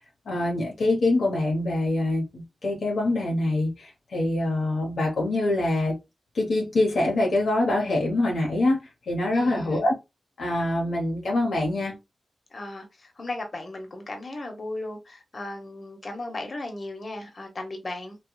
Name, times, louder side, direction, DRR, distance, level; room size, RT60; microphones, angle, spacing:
voice 1, 0.3-6.0 6.3-8.8 9.1-9.9 10.4-12.0, left 2 dB, 75° left, 0.8 m, -24 dB
voice 2, 9.3-9.9 12.5-18.2, left 2 dB, 50° left, 1.0 m, -36 dB
3.2 x 2.2 x 2.2 m
supercardioid pair, 40°, 0 cm